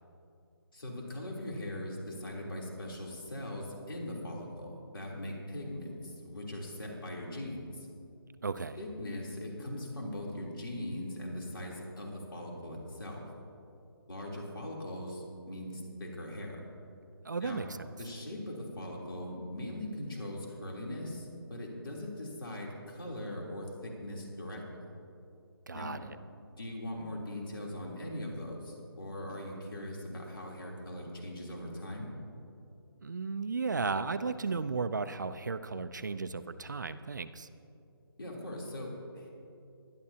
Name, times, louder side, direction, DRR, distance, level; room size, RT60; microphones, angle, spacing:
voice 1, 0.7-7.9 8.8-13.2 14.1-16.6 17.4-17.6 18.0-24.9 25.7-26.0 26.6-32.1 38.2-39.3, left 1 dB, 65° left, -2 dB, 3.3 m, -40 dB
voice 2, 8.4-8.8 17.2-17.9 25.7-26.2 33.0-37.5, right 4 dB, 50° right, 12 dB, 0.4 m, -35 dB
21.0 x 11.5 x 2.8 m, 2.6 s
hypercardioid pair, 175°, 13 cm